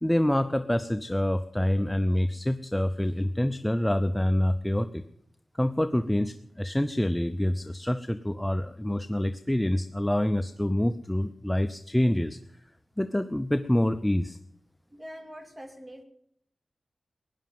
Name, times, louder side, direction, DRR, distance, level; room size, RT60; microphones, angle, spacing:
voice 1, 0.0-5.0 5.6-12.4 13.0-14.4, left 1 dB, 10° left, 10 dB, 0.6 m, -26 dB
voice 2, 14.9-16.0, equal, 20° right, 6 dB, 2.4 m, -44 dB
17.0 x 10.5 x 7.7 m, 0.72 s
wide cardioid pair, 90°, 0 cm